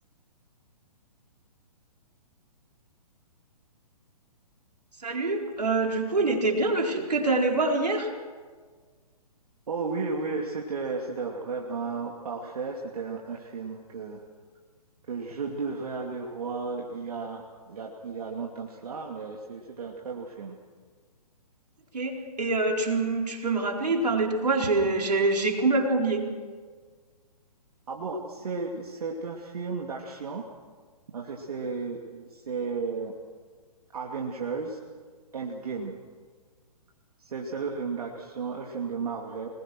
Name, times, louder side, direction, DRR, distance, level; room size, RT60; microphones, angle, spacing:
voice 1, 5.0-8.1 21.9-26.3, right 3 dB, 85° right, 1 dB, 4.4 m, -25 dB
voice 2, 9.7-14.2 15.1-20.6 27.9-30.5 31.1-33.1 33.9-34.8 35.3-36.0 37.2-39.5, right 4 dB, 65° right, 0 dB, 2.7 m, -34 dB
26.0 x 20.5 x 6.3 m, 1.5 s
hypercardioid pair, 135°, 20 cm